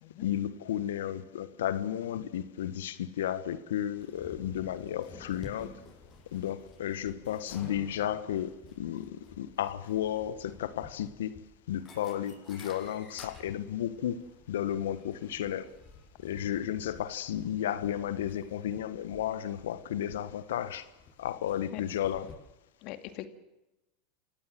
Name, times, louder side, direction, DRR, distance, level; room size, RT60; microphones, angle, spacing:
voice 1, 0.2-5.8 6.3-11.3 11.7-14.2 14.5-15.7 16.2-20.9 21.2-22.3, left 11 dB, 80° left, 1.4 m, -33 dB
sound 1, 4.0-22.3, left 4 dB, 35° left, 7.8 m, -52 dB
voice 2, 22.8-23.3, left 16 dB, 60° left, 2.2 m, -41 dB
29.0 x 16.5 x 7.7 m
hypercardioid pair, 95°, 0 cm